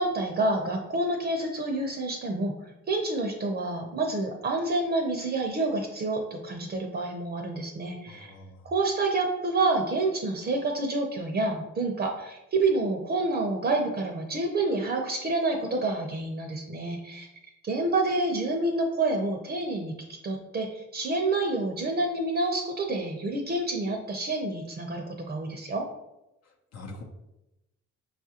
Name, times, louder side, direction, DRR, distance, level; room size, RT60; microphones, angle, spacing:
voice 1, 0.0-8.3 8.7-17.3 17.6-25.8, right 2 dB, 35° right, 2 dB, 0.6 m, -28 dB
voice 2, 8.1-8.6 26.7-27.0, left 2 dB, 60° left, 1 dB, 0.7 m, -43 dB
5.4 x 2.4 x 2.8 m, 0.92 s
cardioid pair, 90°, 30 cm